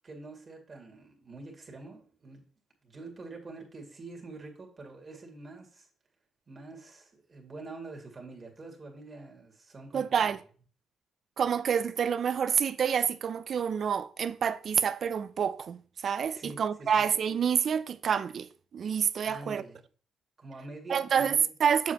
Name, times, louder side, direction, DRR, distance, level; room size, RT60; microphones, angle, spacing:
voice 1, 0.0-2.4 2.8-5.9 6.5-10.3 16.3-17.1 19.2-19.8 20.4-21.5, right 3 dB, 35° right, 2.2 m, -46 dB
voice 2, 9.9-10.4 11.4-19.6 20.9-21.9, right 7 dB, 55° right, 0.4 m, -28 dB
7.4 x 6.8 x 2.9 m
cardioid pair, 90°, 0 cm